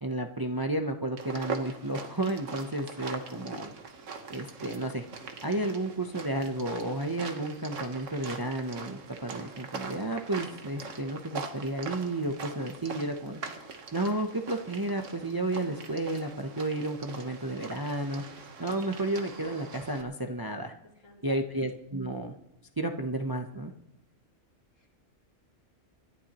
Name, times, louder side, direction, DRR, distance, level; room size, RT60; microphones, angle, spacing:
voice 1, 0.0-3.7 4.3-5.0 5.4-13.4 13.9-18.2 18.6-20.7 21.2-22.3 22.8-23.7, right 2 dB, 25° right, 4 dB, 0.6 m, -32 dB
sound 1, 1.2-20.0, right 4 dB, 80° right, 1.5 m, -42 dB
voice 2, 3.1-3.5 20.8-21.5 24.7-24.9, left 3 dB, 80° left, -3 dB, 3.1 m, -56 dB
26.5 x 11.5 x 3.0 m, 0.85 s
omnidirectional pair, 1.3 m